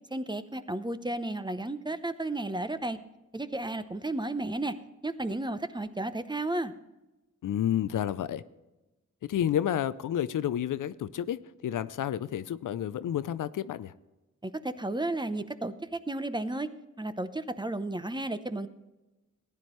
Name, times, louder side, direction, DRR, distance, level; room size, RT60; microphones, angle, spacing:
voice 1, 0.1-3.0 3.3-4.8 5.0-6.7 14.4-16.7 17.0-18.7, right 2 dB, 15° right, 12 dB, 0.7 m, -33 dB
voice 2, 7.4-8.4 9.3-11.4 11.6-13.9, left 10 dB, 85° left, 15 dB, 0.5 m, -30 dB
15.0 x 9.8 x 3.1 m, 1.0 s
cardioid pair, 50°, 31 cm